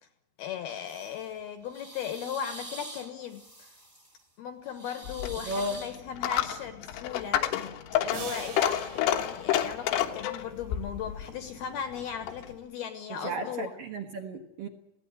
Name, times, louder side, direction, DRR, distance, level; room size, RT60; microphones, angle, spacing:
voice 1, 0.4-3.4 4.4-7.4 8.0-13.7, left 8 dB, 70° left, 8 dB, 2.6 m, -37 dB
sound 1, 0.9-1.2 1.6-4.2 4.7-5.9, right 2 dB, 20° right, 0.7 m, -45 dB
Coin (dropping), 5.0-12.6, left 11 dB, 85° left, 4.0 m, -30 dB
voice 2, 5.5-5.8 13.1-14.7, right 1 dB, 65° right, 4 dB, 2.3 m, -34 dB
sound 2, 8.1-10.6, right 5 dB, 85° right, 7.2 m, -44 dB
21.5 x 16.5 x 9.8 m, 0.88 s
omnidirectional pair, 5.7 m